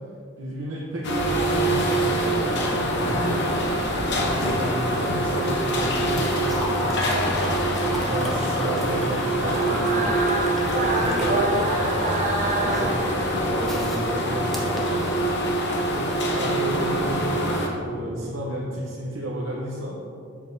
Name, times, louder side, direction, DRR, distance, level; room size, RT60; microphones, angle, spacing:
voice 1, 0.4-3.4 4.1-7.3 7.8-10.1 10.6-12.1 12.5-15.1 15.9-20.0, right 1 dB, 90° right, -5 dB, 0.8 m, -32 dB
sound 1, 1.0-17.7, right 1 dB, 60° left, 0.8 m, -25 dB
sound 2, 5.0-15.6 16.9-17.1, equal, ahead, 0.9 m, -38 dB
sound 3, 9.4-13.8, right 2 dB, 40° right, 0.7 m, -27 dB
7.5 x 6.3 x 2.7 m, 2.5 s
head